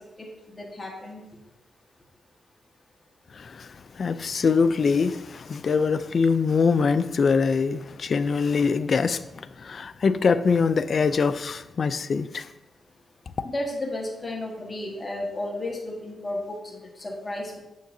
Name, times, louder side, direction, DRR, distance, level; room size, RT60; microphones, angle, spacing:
voice 1, 0.2-1.2 13.4-16.6 17.0-17.5, left 1 dB, 30° left, 1.4 m, -33 dB
voice 2, 3.4-3.7 4.0-12.5, left 5 dB, 55° left, 0.3 m, -23 dB
6.9 x 6.5 x 2.7 m
cardioid pair, 70°, 0 cm